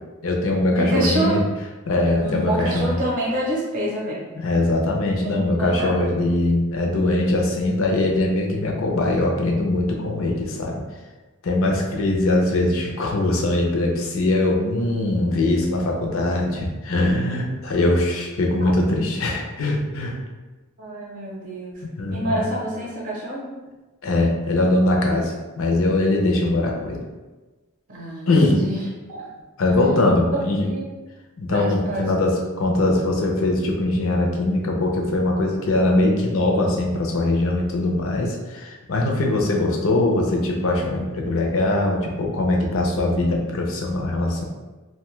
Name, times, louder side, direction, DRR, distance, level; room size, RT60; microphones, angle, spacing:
voice 1, 0.2-1.4 1.9-2.9 4.4-10.8 11.4-20.2 22.0-22.5 24.0-27.0 28.3-28.6 29.6-30.7 31.4-44.4, left 2 dB, 65° left, 0 dB, 0.5 m, -21 dB
voice 2, 0.8-1.4 2.2-4.2 5.2-5.9 18.6-18.7 20.8-21.8 22.1-23.5 27.9-29.3 30.3-30.9 31.5-32.1, right 1 dB, 40° right, -4 dB, 0.6 m, -27 dB
2.6 x 2.2 x 3.0 m, 1.2 s
head